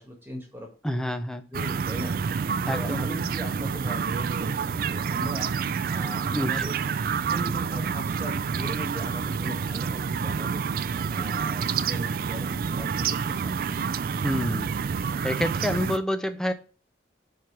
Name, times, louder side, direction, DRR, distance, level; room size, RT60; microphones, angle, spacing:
voice 1, 0.0-0.7 1.5-2.2 2.7-5.5 5.9-6.8 7.3-10.6 11.1-13.6, equal, 10° right, 0 dB, 1.4 m, -39 dB
voice 2, 0.8-1.5 2.7-3.0 6.3-6.7 14.2-14.8 15.2-16.5, equal, 5° left, 9 dB, 0.5 m, -28 dB
sound 1, 1.5-16.0, right 6 dB, 50° right, 0.3 m, -28 dB
4.9 x 4.5 x 5.8 m, 0.36 s
head